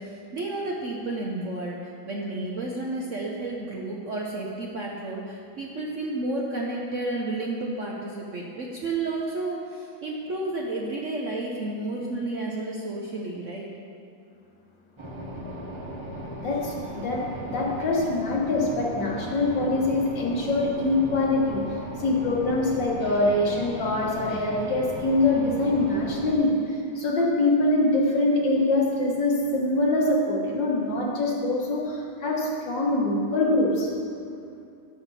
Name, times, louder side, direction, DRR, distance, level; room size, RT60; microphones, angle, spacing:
voice 1, 0.0-1.8 2.0-13.7, right 2 dB, 55° right, -2 dB, 0.9 m, -31 dB
sound 1, 15.0-26.4, equal, 25° right, 0.6 m, -37 dB
voice 2, 16.4-21.6 22.0-33.9, left 2 dB, 65° left, -3 dB, 2.1 m, -24 dB
12.0 x 7.1 x 4.2 m, 2.4 s
omnidirectional pair, 2.1 m